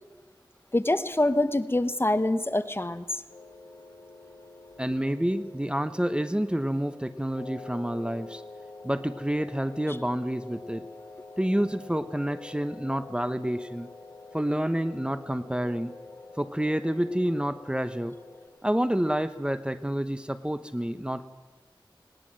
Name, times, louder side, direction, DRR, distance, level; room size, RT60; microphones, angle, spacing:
voice 1, 0.7-3.2 9.9-10.0, left 1 dB, 25° left, 12 dB, 1.1 m, -25 dB
sound 1, 3.3-18.5, left 3 dB, 85° left, 2.7 m, -47 dB
voice 2, 4.8-8.4 8.8-10.8 11.4-13.9 14.3-15.9 16.4-18.2 18.6-21.3, right 1 dB, 10° right, 12 dB, 1.0 m, -28 dB
19.5 x 19.0 x 7.7 m, 1.2 s
wide cardioid pair, 45°, 9 cm